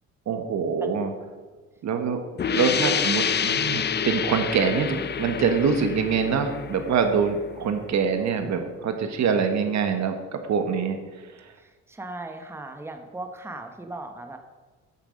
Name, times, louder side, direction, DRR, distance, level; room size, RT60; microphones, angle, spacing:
voice 1, 0.3-1.1 1.8-2.2 2.5-11.5, right 6 dB, 65° right, 6 dB, 1.3 m, -25 dB
sound 1, 2.4-7.9, left 7 dB, 35° left, 0.5 m, -28 dB
voice 2, 11.5-14.4, right 2 dB, 10° right, 5 dB, 1.0 m, -38 dB
9.0 x 6.9 x 6.4 m, 1.3 s
cardioid pair, 90°, 30 cm